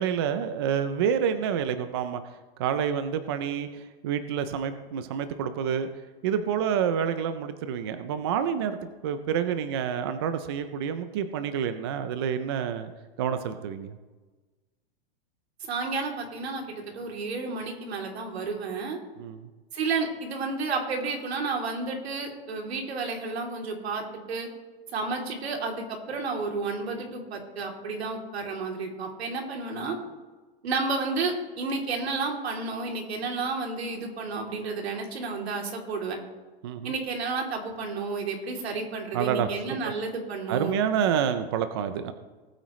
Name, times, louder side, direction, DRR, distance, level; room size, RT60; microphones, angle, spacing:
voice 1, 0.0-2.2 2.6-5.9 6.2-8.8 9.0-12.9 13.2-14.0 19.2-19.5 36.6-36.9 39.1-39.9 40.5-42.1, right 8 dB, 25° right, 10 dB, 0.4 m, -28 dB
voice 2, 15.7-19.0 19.7-24.5 24.9-30.0 30.6-36.2 36.8-40.8, right 4 dB, 85° right, 1 dB, 3.0 m, -31 dB
19.0 x 8.9 x 3.1 m, 1.3 s
supercardioid pair, 170°, 31 cm